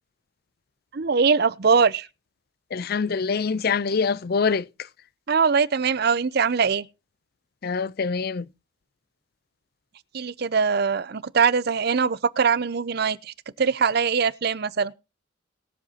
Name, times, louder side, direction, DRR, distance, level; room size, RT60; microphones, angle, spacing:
voice 1, 0.9-2.1 5.3-6.8 10.1-14.9, right 5 dB, 50° right, 0.5 m, -22 dB
voice 2, 2.7-4.7 7.6-8.5, left 5 dB, 50° left, 0.5 m, -25 dB
21.5 x 7.4 x 2.8 m
head